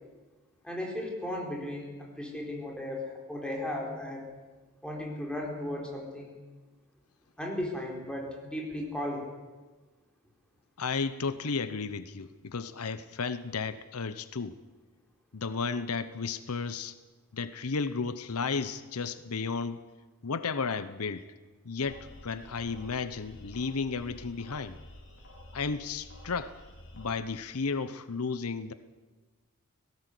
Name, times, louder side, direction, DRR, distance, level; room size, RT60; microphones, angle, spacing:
voice 1, 0.6-4.3 4.8-6.3 7.4-9.3, left 1 dB, 5° left, -1 dB, 4.6 m, -36 dB
voice 2, 10.8-14.6 15.3-17.0 17.3-19.8 20.2-21.3 21.6-24.8 25.5-26.6 26.9-28.7, left 4 dB, 85° left, 13 dB, 0.9 m, -33 dB
sound 1, 21.8-27.1, left 1 dB, 60° left, 4.8 m, -50 dB
18.0 x 17.5 x 8.3 m, 1.3 s
head